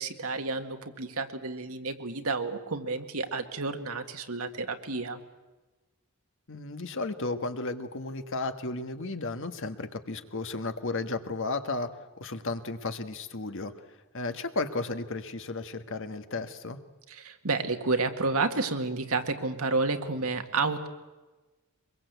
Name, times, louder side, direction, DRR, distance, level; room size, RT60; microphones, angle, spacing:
voice 1, 0.0-5.2 17.1-20.9, right 3 dB, 80° right, 6 dB, 1.9 m, -30 dB
voice 2, 6.5-11.9 12.2-16.8, left 3 dB, 65° left, 8 dB, 1.5 m, -34 dB
24.0 x 22.0 x 8.1 m, 1.2 s
head